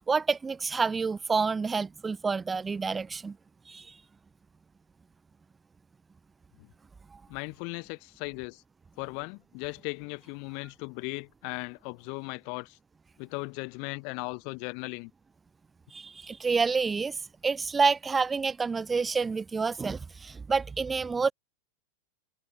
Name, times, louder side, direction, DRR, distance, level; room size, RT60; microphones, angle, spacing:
voice 1, 0.0-3.3 3.7-3.9 15.9-17.2 17.4-21.3, right 4 dB, 10° right, 1.4 m, -28 dB
voice 2, 7.3-8.6 9.0-12.8 13.2-15.1, left 39 dB, 45° left, 3.7 m, -37 dB
supercardioid pair, 150°, 0 cm